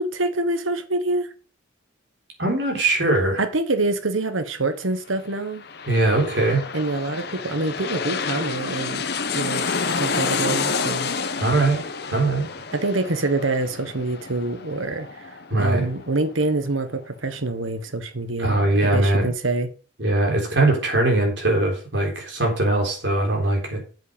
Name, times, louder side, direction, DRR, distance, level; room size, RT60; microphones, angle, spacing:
voice 1, 0.0-1.3 3.4-5.6 6.7-9.0 9.3-9.6 10.0-11.1 12.7-19.7, right 2 dB, 90° right, 1.4 m, -26 dB
voice 2, 2.4-3.4 5.9-6.6 11.4-11.8 12.1-12.5 15.5-15.9 18.4-19.3 20.0-23.8, right 2 dB, 60° right, 3.8 m, -21 dB
sound 1, 5.3-16.7 17.0-17.1, left 5 dB, 55° left, 0.9 m, -29 dB
7.8 x 7.7 x 5.2 m
head